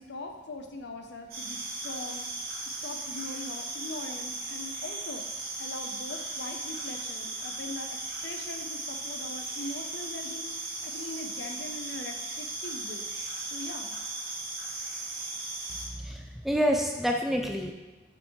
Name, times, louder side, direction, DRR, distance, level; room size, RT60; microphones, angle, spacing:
voice 1, 0.0-2.3 2.6-5.2 5.6-8.0 8.2-10.5 10.8-13.1 13.5-14.0, left 2 dB, 60° left, 4 dB, 0.7 m, -41 dB
sound 1, 1.3-15.9, right 2 dB, 50° right, 2.2 m, -37 dB
voice 2, 15.7-17.7, equal, ahead, 2 dB, 0.4 m, -28 dB
6.6 x 5.7 x 3.2 m, 1.2 s
head